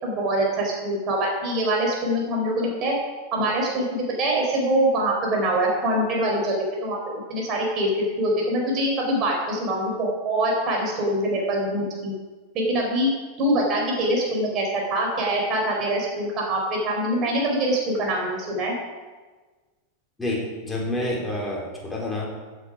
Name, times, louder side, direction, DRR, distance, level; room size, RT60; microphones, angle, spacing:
voice 1, 0.0-2.9 3.3-6.6 6.8-7.0 7.3-12.1 12.5-13.1 13.4-18.7, right 1 dB, 35° right, -1 dB, 4.8 m, -24 dB
voice 2, 20.2-22.2, left 1 dB, 5° left, -3 dB, 4.0 m, -28 dB
15.5 x 8.5 x 5.1 m, 1.3 s
figure-of-eight pair, 90°, 0 cm